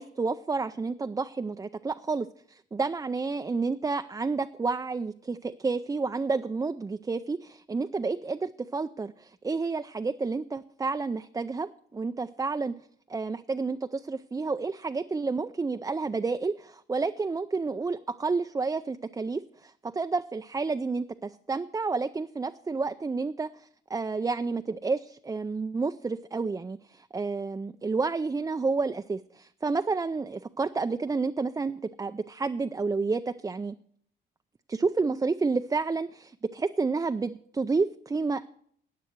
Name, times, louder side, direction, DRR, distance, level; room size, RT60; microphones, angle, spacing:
voice 1, 0.0-12.7 13.1-33.8 34.7-38.5, right 4 dB, 15° right, 8 dB, 0.4 m, -30 dB
15.0 x 9.2 x 4.5 m, 0.64 s
cardioid pair, 90°, 20 cm